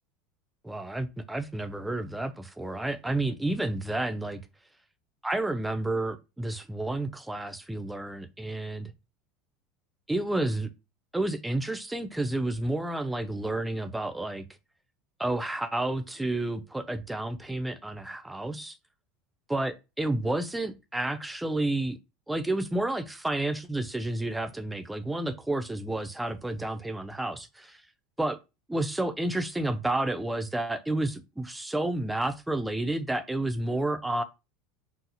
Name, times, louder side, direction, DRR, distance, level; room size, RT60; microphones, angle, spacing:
voice 1, 0.6-4.4 5.2-8.9 10.1-10.7 11.1-14.5 15.2-18.8 19.5-22.0 22.3-27.7 28.2-28.4 28.7-34.2, right 2 dB, 5° right, 0.4 m, -30 dB
2.7 x 2.0 x 3.9 m
hypercardioid pair, 95°, 0 cm